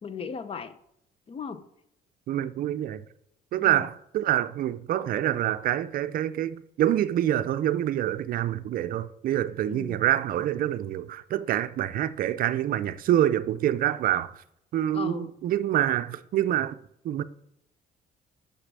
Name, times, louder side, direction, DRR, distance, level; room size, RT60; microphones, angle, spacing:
voice 1, 0.0-0.8 1.3-1.6 3.6-3.9 9.7-10.0 14.9-15.3, left 6 dB, 35° left, 0.7 m, -37 dB
voice 2, 2.3-3.1 3.5-14.4 14.7-16.8 17.0-17.2, right 12 dB, 60° right, 0.5 m, -26 dB
6.7 x 6.0 x 7.4 m
cardioid pair, 110°, 17 cm